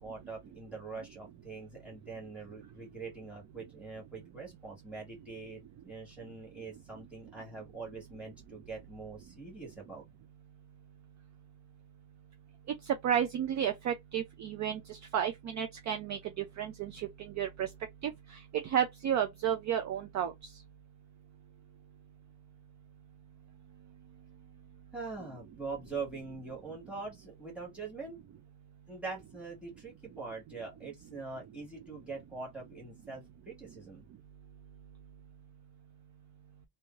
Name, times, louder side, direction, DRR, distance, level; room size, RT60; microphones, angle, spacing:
voice 1, 0.0-10.0 24.9-28.2 28.9-34.0, right 4 dB, 5° right, 1.7 m, -43 dB
voice 2, 12.9-17.7 18.0-18.1 18.5-20.3, right 9 dB, 40° right, 0.5 m, -32 dB
3.1 x 2.7 x 2.4 m
cardioid pair, 170°, 44 cm